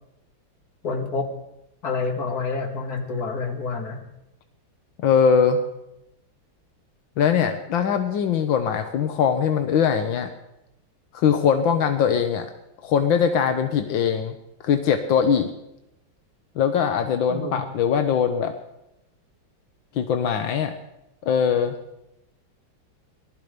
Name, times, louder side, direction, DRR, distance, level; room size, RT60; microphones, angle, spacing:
voice 1, 0.8-1.3 1.8-4.0 17.3-17.6, left 4 dB, 50° left, 3 dB, 2.5 m, -28 dB
voice 2, 5.0-5.6 7.2-10.3 11.1-12.5 12.8-14.3 14.6-15.5 16.5-18.5 19.9-20.7 21.2-21.8, left 7 dB, 80° left, 7 dB, 1.7 m, -21 dB
19.0 x 12.5 x 5.1 m, 0.87 s
omnidirectional pair, 2.1 m